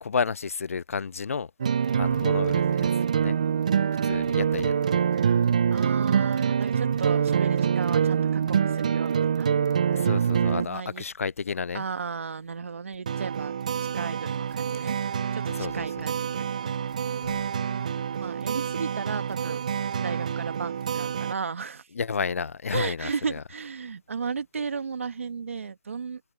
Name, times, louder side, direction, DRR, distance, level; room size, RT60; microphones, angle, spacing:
voice 1, 0.0-1.5 1.9-3.4 4.0-5.0 9.9-11.8 15.6-15.9 17.2-17.4 21.9-23.4, left 5 dB, 60° left, 0.4 m, -31 dB
sound 1, 1.6-10.7 13.1-21.3, right 7 dB, 30° right, 0.3 m, -25 dB
voice 2, 1.8-2.1 5.7-9.5 10.7-11.0 11.7-15.0 15.3-16.6 18.2-19.7 20.0-21.9 22.7-26.2, right 5 dB, 55° right, 1.8 m, -34 dB
hypercardioid pair, 170°, 8 cm